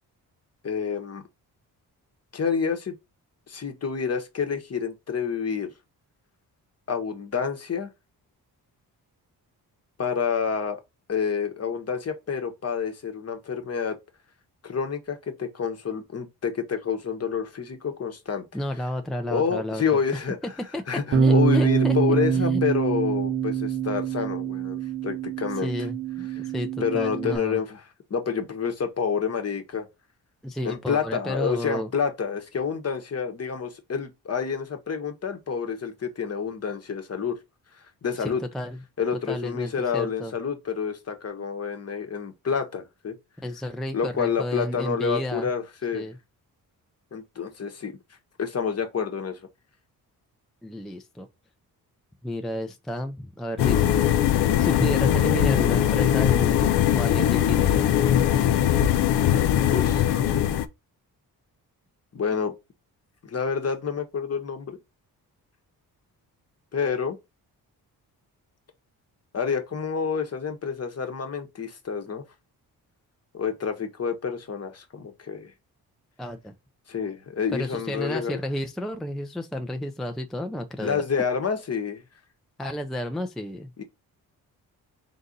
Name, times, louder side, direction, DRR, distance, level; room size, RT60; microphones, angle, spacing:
voice 1, 0.6-1.2 2.3-2.9 3.5-5.7 6.9-7.9 10.0-10.8 11.1-14.0 14.6-18.4 19.3-20.4 20.9-25.9 26.8-27.8 28.1-29.9 30.6-37.4 38.0-38.4 39.0-43.1 43.9-46.1 47.1-47.9 48.4-49.4 59.7-60.5 62.1-62.5 63.2-64.8 66.7-67.2 69.3-72.2 73.3-75.5 76.9-78.4 80.8-82.0 83.8-83.9, left 6 dB, 40° left, 1.0 m, -28 dB
voice 2, 18.5-19.8 20.7-20.8 21.1-21.9 22.3-22.6 25.5-27.6 30.4-31.9 38.2-38.8 39.3-40.3 43.4-45.5 45.9-46.2 50.6-51.3 52.2-53.9 54.6-58.0 76.2-76.5 77.5-81.0 82.6-83.7, left 1 dB, ahead, 0.4 m, -32 dB
Bass guitar, 21.1-27.4, right 6 dB, 35° right, 0.8 m, -24 dB
sound 1, 53.6-60.7, left 10 dB, 85° left, 0.5 m, -21 dB
3.9 x 2.5 x 3.9 m
cardioid pair, 80°, 39 cm